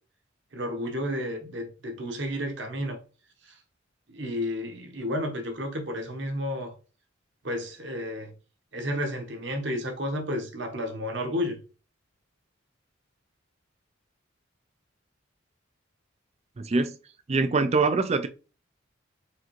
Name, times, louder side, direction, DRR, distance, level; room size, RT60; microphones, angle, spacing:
voice 1, 0.5-3.0 4.1-6.7 7.4-8.3 8.7-11.6, left 1 dB, 60° right, 1.1 m, -31 dB
voice 2, 16.6-16.9 17.3-18.3, right 3 dB, 30° right, 0.4 m, -23 dB
4.8 x 3.5 x 3.0 m
head